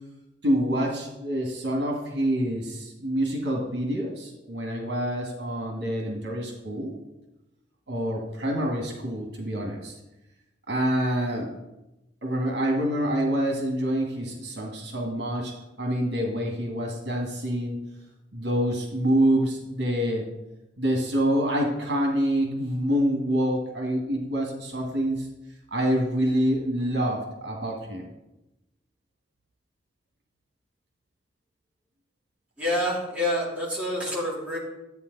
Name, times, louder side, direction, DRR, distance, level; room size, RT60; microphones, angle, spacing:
voice 1, 0.4-7.0 7.9-10.0 10.7-11.5 12.2-17.8 18.3-20.3 20.8-25.3 25.7-28.1, equal, 70° right, 0 dB, 2.0 m, -26 dB
voice 2, 32.6-34.6, left 1 dB, 5° right, -7 dB, 3.2 m, -27 dB
12.5 x 8.5 x 4.1 m, 0.95 s
head